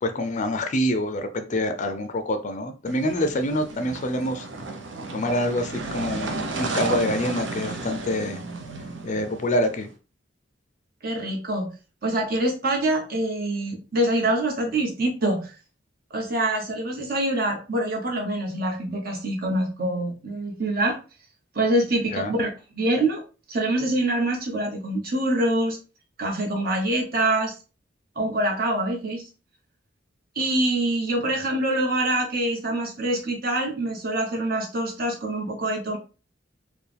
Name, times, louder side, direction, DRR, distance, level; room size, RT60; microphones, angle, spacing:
voice 1, 0.0-4.5 5.1-8.4 9.0-9.9 22.1-22.3, left 1 dB, 40° left, 0.5 m, -26 dB
sound 1, 2.9-9.9, right 3 dB, 75° right, 0.7 m, -33 dB
voice 2, 11.0-11.7 12.0-15.5 16.1-21.0 21.5-22.5 22.7-23.2 23.5-25.8 26.2-27.5 28.1-29.2 30.3-36.0, right 1 dB, 50° right, 1.1 m, -25 dB
4.4 x 2.2 x 3.4 m
head